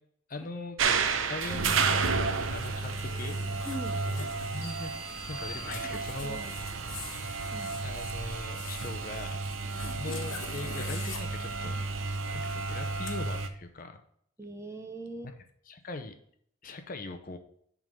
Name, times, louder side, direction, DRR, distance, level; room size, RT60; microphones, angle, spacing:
voice 1, 0.3-3.4 4.1-4.9 5.3-6.8 7.8-9.4 9.9-11.8 12.3-14.0 15.2-15.3 15.7-16.1 16.6-17.4, left 3 dB, 40° left, 7 dB, 0.6 m, -41 dB
sound 1, 0.8-13.5, right 4 dB, 70° right, 0.6 m, -32 dB
Zipper (clothing), 1.0-13.1, left 4 dB, 70° left, 1.2 m, -46 dB
voice 2, 3.6-4.0 5.8-6.6 7.5-7.7 9.8-9.9 14.4-15.3, right 1 dB, 15° right, 5 dB, 0.6 m, -41 dB
sound 2, 4.6-6.4, left 1 dB, 50° right, 1.7 m, -46 dB
7.9 x 3.7 x 5.2 m, 0.67 s
head